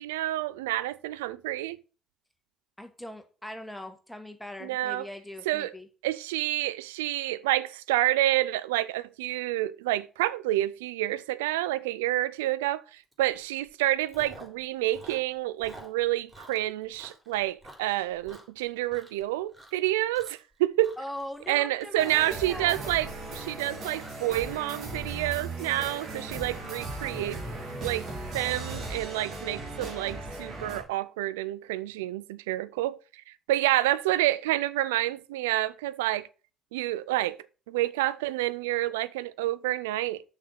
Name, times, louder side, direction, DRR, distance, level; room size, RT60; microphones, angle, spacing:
voice 1, 0.0-1.8 4.6-5.1 5.5-5.7 6.0-21.0 21.5-27.4 27.8-28.1 28.3-33.0 33.5-36.3 36.7-37.4 37.7-40.2, right 15 dB, 85° right, 0.4 m, -28 dB
voice 2, 2.8-5.9 21.0-22.8, left 1 dB, 5° left, 1.9 m, -41 dB
Chewing mastication, 13.1-13.3 13.6-14.6 14.9-19.2 19.5-19.9 20.1-20.5 20.8-27.3, right 1 dB, 20° right, 4.1 m, -50 dB
sound 1, 22.0-30.8, right 2 dB, 60° right, 3.1 m, -37 dB
6.5 x 5.9 x 6.5 m
hypercardioid pair, 50°, 0 cm